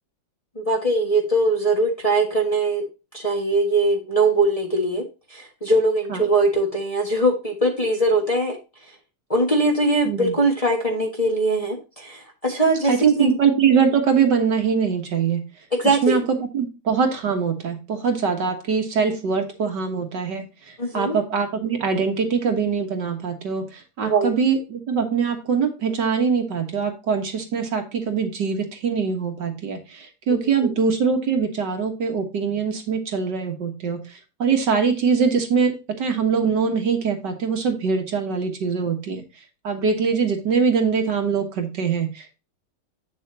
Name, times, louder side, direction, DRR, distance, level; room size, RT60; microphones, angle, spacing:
voice 1, 0.5-2.8 3.1-5.0 5.3-8.6 9.3-13.3 15.7-16.2 20.8-21.2 24.0-24.3 30.3-30.7, right 2 dB, 20° left, 0 dB, 1.4 m, -21 dB
voice 2, 10.0-10.4 12.9-15.4 15.8-16.2 16.5-39.2 39.6-42.4, right 6 dB, 60° right, 5 dB, 1.9 m, -23 dB
8.5 x 6.8 x 2.7 m, 0.29 s
omnidirectional pair, 2.2 m